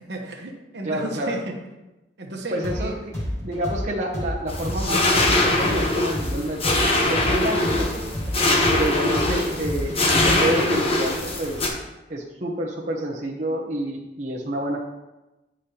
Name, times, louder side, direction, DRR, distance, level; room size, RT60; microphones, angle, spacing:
voice 1, 0.0-1.6 2.2-3.0, right 1 dB, 65° right, 2 dB, 1.1 m, -33 dB
voice 2, 0.8-1.3 2.5-3.1 3.4-8.1 8.7-11.6 12.1-14.8, right 1 dB, 40° right, -3 dB, 0.8 m, -29 dB
sound 1, 2.6-10.6, left 1 dB, 15° left, 2.3 m, -30 dB
sound 2, 4.5-11.7, left 2 dB, 35° left, 0.9 m, -22 dB
9.9 x 5.0 x 2.9 m, 1.0 s
head